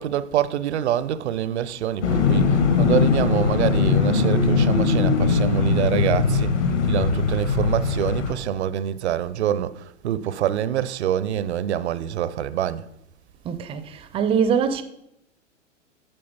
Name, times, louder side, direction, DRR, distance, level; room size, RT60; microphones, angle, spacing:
voice 1, 0.0-6.6 6.9-12.8, right 10 dB, 60° right, 0.6 m, -26 dB
sound 1, 2.0-8.3, left 4 dB, 65° left, 2.1 m, -20 dB
voice 2, 13.4-14.8, right 7 dB, 15° right, 0.5 m, -23 dB
8.9 x 6.6 x 5.4 m
figure-of-eight pair, 105°, 38 cm